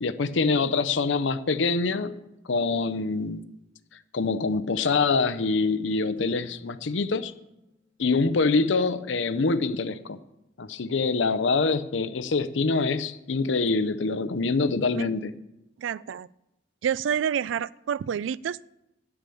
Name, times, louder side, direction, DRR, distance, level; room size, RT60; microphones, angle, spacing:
voice 1, 0.0-2.2 2.5-3.5 4.1-7.3 8.0-10.2 10.6-15.3, left 4 dB, 70° left, 0.6 m, -25 dB
sound 1, 6.1-8.5, left 3 dB, 10° right, 3.0 m, -56 dB
voice 2, 15.8-16.3 16.8-18.6, right 8 dB, 75° right, 0.3 m, -28 dB
9.6 x 7.0 x 8.4 m
head